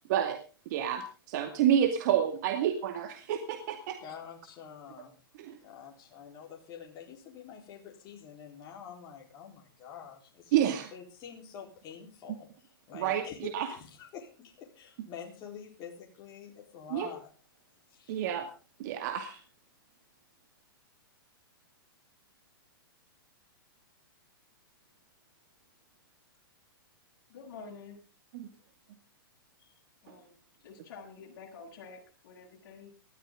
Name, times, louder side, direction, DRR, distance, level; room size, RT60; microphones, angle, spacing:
voice 1, 0.7-4.0 5.4-5.6 10.5-10.9 12.9-13.2 13.5-13.7 16.9-17.1 18.1-18.5 18.8-19.4 28.3-28.5, right 10 dB, 50° right, 6 dB, 2.3 m, -29 dB
voice 2, 4.0-5.2 5.6-17.3 17.9-18.2, left 8 dB, 30° left, 0 dB, 4.1 m, -47 dB
voice 3, 27.3-28.0 29.6-29.7 30.0-30.3 30.6-32.9, left 5 dB, 50° left, -2 dB, 7.7 m, -48 dB
19.5 x 14.0 x 3.8 m, 0.33 s
hypercardioid pair, 140°, 12 cm